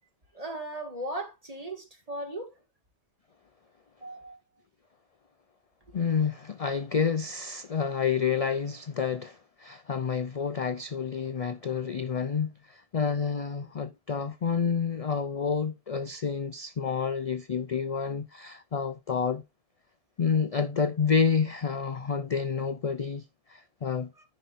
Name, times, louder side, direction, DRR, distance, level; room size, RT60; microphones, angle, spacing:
voice 1, 0.3-2.5 4.0-4.4 24.2-24.3, right 1 dB, 30° right, 2.0 m, -37 dB
voice 2, 5.9-19.4 20.2-24.1, left 6 dB, 45° left, 0.5 m, -29 dB
14.0 x 5.6 x 2.5 m
omnidirectional pair, 1.2 m